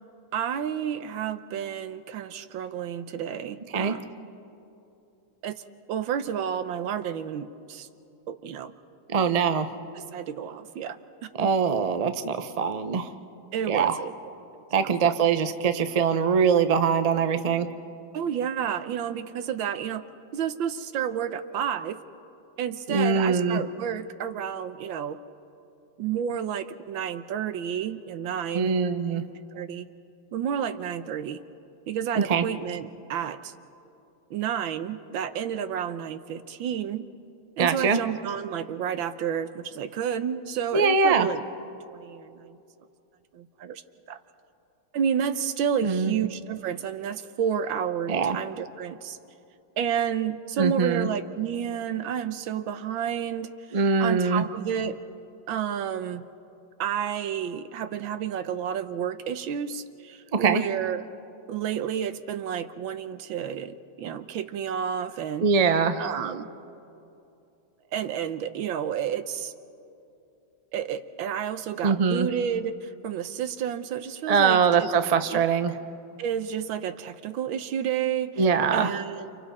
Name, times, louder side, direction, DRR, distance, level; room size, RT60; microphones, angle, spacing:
voice 1, 0.3-4.1 5.4-5.6 5.9-7.9 8.3-8.7 9.9-11.0 11.4-11.5 13.5-14.1 14.8-15.1 18.1-20.0 20.3-22.0 22.6-25.2 26.0-28.8 29.5-29.9 30.3-31.4 31.9-33.5 34.3-37.1 37.6-41.4 41.9-42.6 43.3-43.8 44.1-44.2 44.9-49.2 49.8-55.0 55.5-56.2 56.8-61.0 61.5-65.5 66.0-66.5 67.9-69.5 70.7-74.9 75.3-75.4 76.2-78.5 78.7-79.3, right 8 dB, 85° right, 11 dB, 1.6 m, -30 dB
voice 2, 9.1-9.7 11.4-13.1 13.7-14.0 14.7-17.7 22.9-23.6 28.5-29.2 32.1-32.4 37.6-38.0 40.7-41.3 45.8-46.1 48.1-48.4 50.6-51.1 53.7-54.5 60.3-60.6 65.4-66.0 71.8-72.3 74.3-75.7 78.4-79.0, right 5 dB, 70° right, 9 dB, 0.3 m, -23 dB
29.0 x 29.0 x 4.2 m, 2.7 s
omnidirectional pair, 2.1 m